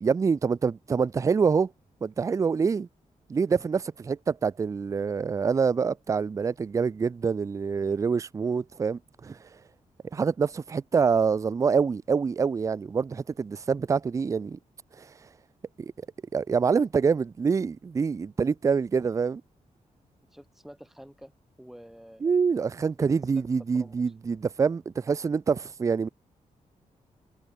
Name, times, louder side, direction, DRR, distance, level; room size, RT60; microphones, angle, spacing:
voice 1, 0.0-1.7 2.0-2.9 3.3-9.4 10.1-14.6 15.0-15.1 15.8-15.9 16.3-19.4 22.2-26.1, right 5 dB, 25° right, 0.3 m, -26 dB
voice 2, 20.3-21.3 21.6-22.2 23.0-23.4 23.7-24.1, equal, ahead, 2.6 m, -48 dB
wide cardioid pair, 150°, 14 cm